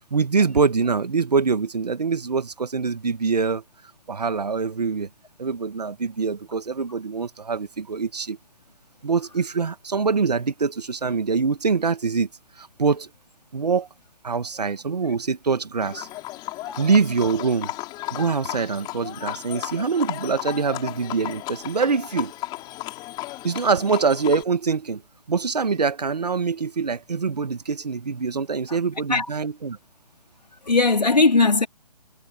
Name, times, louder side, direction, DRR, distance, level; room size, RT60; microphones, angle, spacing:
voice 1, 0.0-3.6 4.1-5.1 5.4-8.4 9.0-12.3 12.6-13.1 13.5-13.9 14.2-16.1 16.8-17.7 18.1-22.3 23.4-25.0 25.3-29.8, right 5 dB, 80° right, 1.9 m, -24 dB
Livestock farm animals working animals, 15.8-24.4, left 18 dB, 20° left, 5.6 m, -35 dB
voice 2, 30.7-31.7, left 3 dB, 90° left, 3.9 m, -19 dB
figure-of-eight pair, 140°, 20 cm